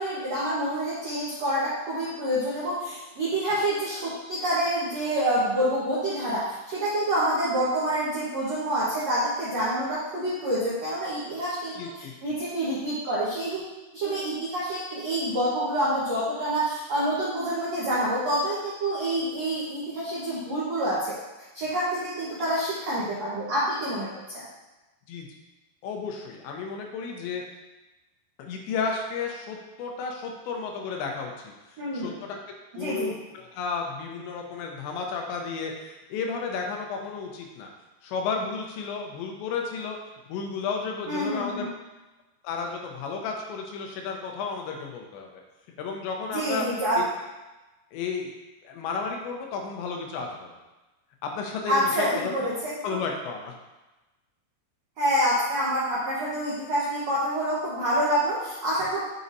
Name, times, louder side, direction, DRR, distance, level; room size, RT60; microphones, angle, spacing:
voice 1, 0.0-13.6 13.9-21.1 21.5-24.1 24.3-24.4 31.8-32.2 32.7-33.1 41.1-41.7 46.3-47.0 51.7-53.0 55.0-59.0, right 1 dB, 75° right, -9 dB, 1.5 m, -27 dB
voice 2, 11.8-12.1 25.1-25.3 25.8-27.4 28.4-31.3 31.9-32.4 32.7-37.7 38.0-40.0 40.3-41.7 42.4-45.3 45.8-46.7 47.0-47.1 47.9-48.3 48.6-50.6 51.2-52.3 52.8-53.5, left 5 dB, 85° left, 1 dB, 2.9 m, -32 dB
7.0 x 5.2 x 2.7 m, 1.1 s
omnidirectional pair, 5.1 m